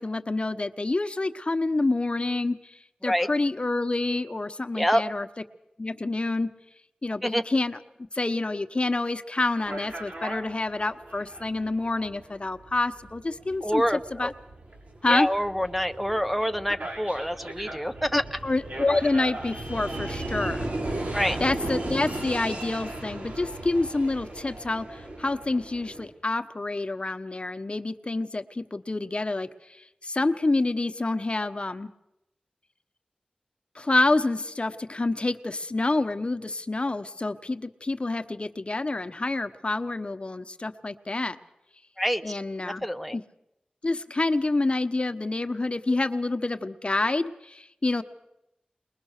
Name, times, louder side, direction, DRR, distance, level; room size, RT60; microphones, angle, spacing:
voice 1, 0.0-5.3 5.8-6.5 7.0-7.8 8.1-14.3 15.0-15.3 18.1-20.7 21.4-29.5 29.8-31.9 33.7-41.4 42.2-42.9 43.1-43.2 43.8-48.0, left 2 dB, 40° left, 9 dB, 1.1 m, -27 dB
voice 2, 4.7-5.1 7.2-7.4 13.6-14.3 15.1-18.4 21.1-21.4 42.0-42.2 42.6-43.2, equal, ahead, 6 dB, 0.9 m, -26 dB
sound 1, 9.6-26.1, right 1 dB, 65° right, 6.2 m, -36 dB
21.5 x 21.0 x 6.6 m, 0.86 s
wide cardioid pair, 55°, 3 cm